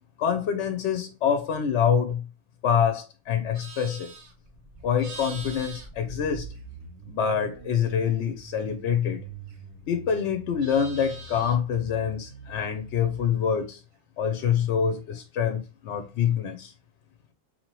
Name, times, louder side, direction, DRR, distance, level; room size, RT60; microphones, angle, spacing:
voice 1, 0.2-2.2 2.6-4.1 4.8-6.5 7.1-9.2 9.9-13.8 14.2-16.7, left 7 dB, 65° left, 0.8 m, -26 dB
Livestock farm animals working animals, 3.3-7.0 7.3-9.9 10.2-11.8, right 3 dB, 90° right, 1.4 m, -45 dB
sound 1, 4.2-13.2, right 4 dB, 75° right, 1.0 m, -45 dB
4.1 x 2.8 x 2.9 m
omnidirectional pair, 1.4 m